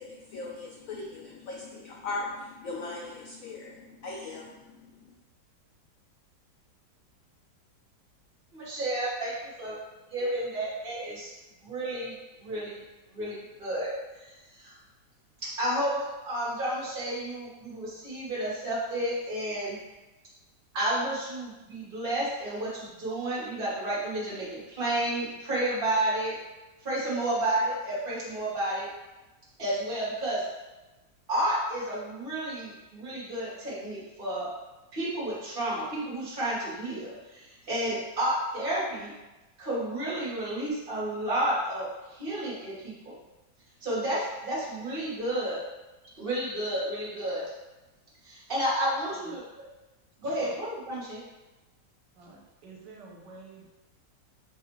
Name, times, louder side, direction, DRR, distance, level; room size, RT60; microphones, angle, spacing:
voice 1, 0.0-5.1, left 3 dB, 75° left, -2 dB, 0.7 m, -39 dB
voice 2, 8.5-9.8 10.1-11.3 11.6-12.8 13.1-13.9 14.2-14.7 15.4-19.8 20.7-26.4 26.8-28.9 29.6-30.4 31.3-34.5 34.9-39.1 39.6-43.1 43.8-45.6 46.0-47.4 48.2-49.4 50.2-51.2, right 1 dB, 35° right, -7 dB, 1.2 m, -31 dB
voice 3, 52.2-53.7, right 3 dB, 75° right, -2 dB, 1.3 m, -49 dB
5.0 x 2.4 x 3.0 m, 1.1 s
omnidirectional pair, 1.9 m